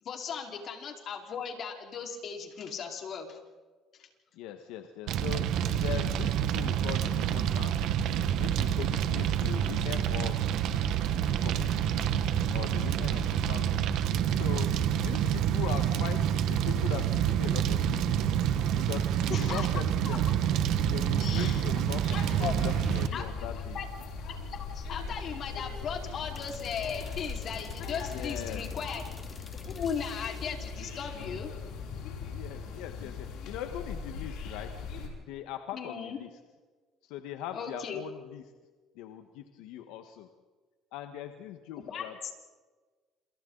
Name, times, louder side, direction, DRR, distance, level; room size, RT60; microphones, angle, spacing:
voice 1, 0.0-3.4 4.0-4.1 19.3-19.7 20.0-20.2 21.2-21.7 22.0-22.5 23.1-23.2 23.7-23.9 24.3-29.0 29.7-31.5 35.7-36.2 37.5-38.0 41.9-42.1, left 7 dB, 50° left, 2 dB, 4.7 m, -37 dB
voice 2, 4.3-5.5 5.8-7.7 8.4-10.6 11.2-12.1 12.5-13.9 14.3-14.7 15.0-18.3 18.8-20.2 20.9-23.8 28.1-28.9 32.3-34.9 35.3-36.3 37.0-38.4 38.9-40.3 40.9-42.1, left 10 dB, 85° left, 6 dB, 1.5 m, -41 dB
Fire, 5.1-23.1, right 9 dB, 70° right, 1.5 m, -28 dB
sound 1, 22.0-35.1, left 5 dB, 70° left, 6.8 m, -39 dB
sound 2, 26.3-30.8, left 3 dB, 20° left, 2.4 m, -48 dB
28.5 x 27.5 x 4.1 m, 1.4 s
cardioid pair, 110°, 0 cm